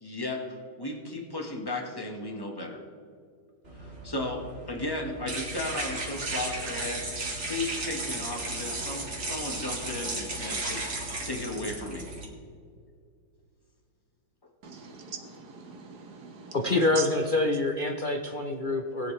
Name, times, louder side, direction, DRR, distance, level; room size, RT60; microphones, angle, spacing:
voice 1, 0.0-2.8 3.8-7.1 7.5-10.8 11.2-12.0, left 2 dB, 15° left, 1 dB, 1.4 m, -35 dB
sound 1, 3.7-12.2, right 2 dB, 40° right, 2.2 m, -35 dB
voice 2, 14.6-17.1, right 5 dB, 60° right, 4 dB, 1.8 m, -41 dB
voice 3, 16.6-19.1, left 2 dB, 55° left, 1 dB, 0.5 m, -26 dB
20.0 x 7.6 x 3.3 m, 2.2 s
omnidirectional pair, 2.0 m